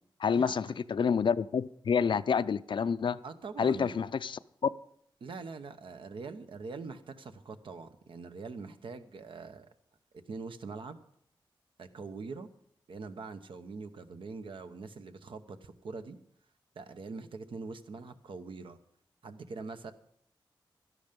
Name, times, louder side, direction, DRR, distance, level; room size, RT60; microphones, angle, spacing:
voice 1, 0.2-3.2 3.6-4.4, left 6 dB, 70° left, 15 dB, 0.5 m, -28 dB
voice 2, 3.2-4.0 5.2-9.7 10.3-11.0 11.8-12.5 12.9-16.2 16.7-18.8 19.2-19.9, right 4 dB, 80° right, 9 dB, 1.0 m, -43 dB
12.5 x 11.5 x 5.2 m, 0.67 s
cardioid pair, 70°, 9 cm